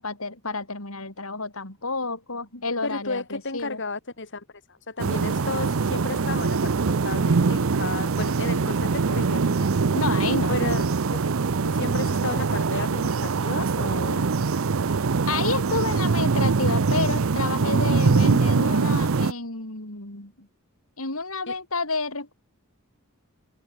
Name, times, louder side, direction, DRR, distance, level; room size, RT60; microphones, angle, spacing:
voice 1, 0.0-3.8 9.9-10.5 15.3-20.5 21.0-22.3, left 3 dB, 75° left, 5.5 m, -30 dB
voice 2, 2.8-9.7 10.5-10.8 11.6-14.3 21.5-21.6, left 3 dB, 60° left, 5.3 m, -33 dB
sound 1, 5.0-19.3, right 4 dB, 65° right, 0.6 m, -23 dB
head